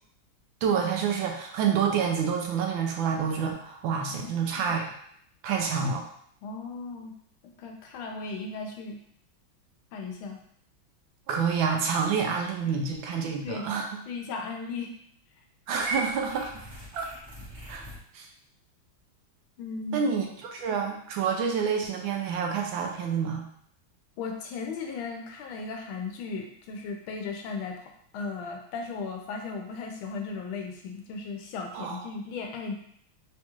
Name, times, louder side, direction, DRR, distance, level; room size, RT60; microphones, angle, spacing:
voice 1, 0.6-4.9 5.4-6.0 11.3-14.0 15.7-16.7 16.9-17.1 17.7-17.8 18.1-18.3 19.9-20.2 20.5-23.4 31.7-32.0, right 6 dB, 75° right, 2 dB, 1.3 m, -28 dB
voice 2, 4.1-4.7 6.4-7.1 7.6-9.0 9.9-10.4 12.6-12.7 13.1-13.6 14.1-14.9 19.6-20.0 24.2-27.8 28.1-32.7, left 4 dB, 85° left, 3 dB, 1.4 m, -36 dB
Purr / Meow, 15.8-18.0, right 2 dB, 50° right, 0.8 m, -37 dB
4.1 x 2.3 x 2.9 m, 0.67 s
omnidirectional pair, 2.2 m